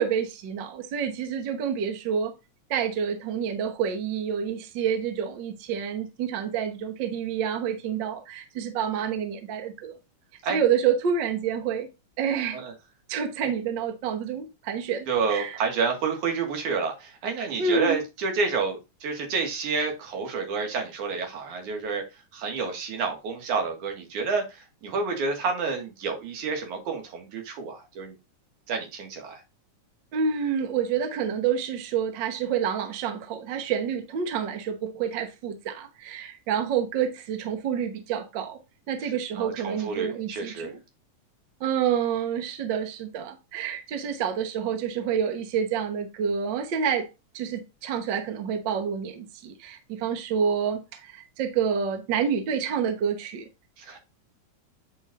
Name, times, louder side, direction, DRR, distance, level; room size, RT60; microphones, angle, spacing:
voice 1, 0.0-2.3 2.7-9.9 10.5-11.9 12.2-12.6 13.1-15.6 17.6-18.0 30.1-38.6 38.9-40.8 41.6-47.1 47.3-53.5, right 7 dB, 60° right, 1.2 m, -28 dB
voice 2, 15.1-22.0 22.3-28.2 28.7-29.4 39.4-40.7 53.8-54.0, right 4 dB, 80° right, 3.1 m, -29 dB
8.7 x 5.2 x 2.5 m
omnidirectional pair, 3.5 m